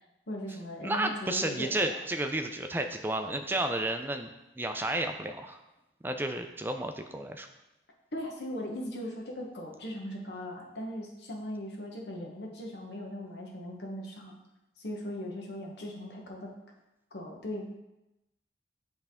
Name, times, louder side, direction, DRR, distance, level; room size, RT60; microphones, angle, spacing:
voice 1, 0.3-1.9 8.1-14.4 14.8-16.5 17.1-17.8, left 1 dB, 75° left, 0 dB, 1.1 m, -39 dB
voice 2, 0.8-4.3 4.6-5.6 6.0-7.5, right 1 dB, 10° right, 6 dB, 0.4 m, -32 dB
8.0 x 3.4 x 3.6 m, 0.94 s
head